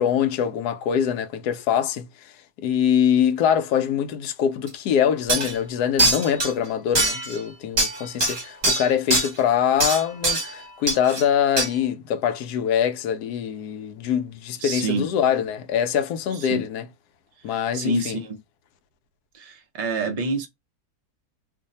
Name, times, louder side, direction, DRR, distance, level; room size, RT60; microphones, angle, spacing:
voice 1, 0.0-16.9 17.4-18.2, left 8 dB, 85° left, 1.1 m, -24 dB
sound 1, 4.7-4.8 5.3-5.5 6.0-6.5 6.9-7.4 7.8-9.3 9.8-10.5 10.9-11.2 11.6-11.7, right 2 dB, 30° right, 0.9 m, -22 dB
voice 2, 14.6-15.1 16.3-16.6 17.5-18.3 19.3-20.5, right 2 dB, 65° right, 0.3 m, -27 dB
2.7 x 2.5 x 4.0 m
omnidirectional pair, 1.6 m